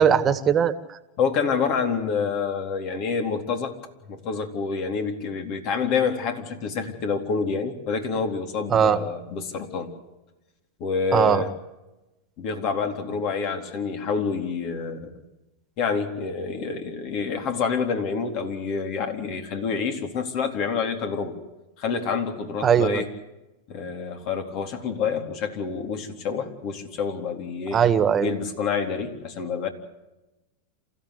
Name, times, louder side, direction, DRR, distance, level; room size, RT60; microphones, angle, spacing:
voice 1, 0.0-1.0 8.7-9.0 11.1-11.4 22.6-23.0 27.7-28.3, right 8 dB, 30° right, 12 dB, 1.8 m, -20 dB
voice 2, 1.2-3.7 4.1-9.9 10.8-11.5 12.4-15.1 15.8-21.3 21.8-23.1 23.7-27.8 28.2-29.7, left 5 dB, 50° left, 6 dB, 3.8 m, -27 dB
28.0 x 15.5 x 8.2 m, 1.0 s
hypercardioid pair, 110°, 0 cm